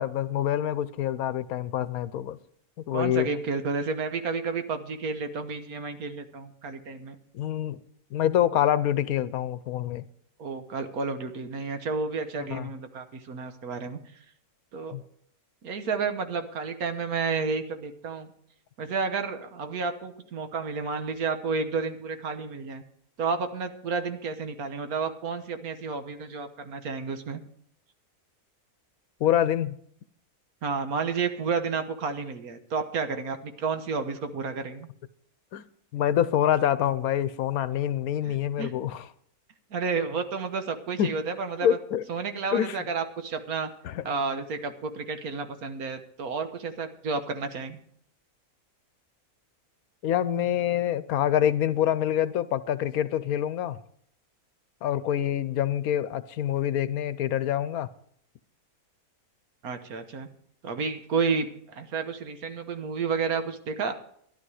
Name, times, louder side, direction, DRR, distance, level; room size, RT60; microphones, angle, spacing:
voice 1, 0.0-2.4 2.9-3.3 7.3-7.8 8.1-10.0 12.4-12.7 14.9-15.0 29.2-29.8 35.5-35.6 35.9-39.1 41.0-41.1 41.6-42.0 42.5-42.8 43.8-44.0 50.0-53.8 54.8-57.9, left 10 dB, 75° left, 1.1 m, -26 dB
voice 2, 2.9-7.2 10.4-14.0 14.7-14.9 15.6-18.3 18.8-22.8 23.2-27.4 30.6-34.9 38.2-38.7 39.7-41.8 42.1-43.7 44.0-47.8 59.6-60.3 60.6-63.9, right 4 dB, 75° right, 1.6 m, -31 dB
13.0 x 11.5 x 4.9 m
omnidirectional pair, 1.6 m